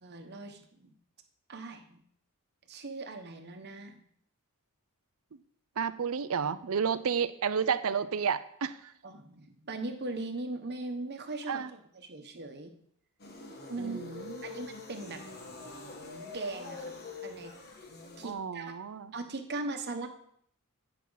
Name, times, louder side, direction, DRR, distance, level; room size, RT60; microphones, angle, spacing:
voice 1, 0.0-1.0 1.5-2.0 2.7-4.0 9.0-12.8 13.7-14.0 14.4-15.4 16.3-17.5 18.2-18.7 19.1-20.1, right 2 dB, 50° right, 6 dB, 1.1 m, -39 dB
voice 2, 5.8-8.9 11.5-11.7 13.8-14.4 18.2-19.1, right 6 dB, 65° right, 14 dB, 0.5 m, -31 dB
sound 1, 13.2-18.3, left 3 dB, 45° left, 1.4 m, -44 dB
16.0 x 5.9 x 4.0 m, 0.67 s
head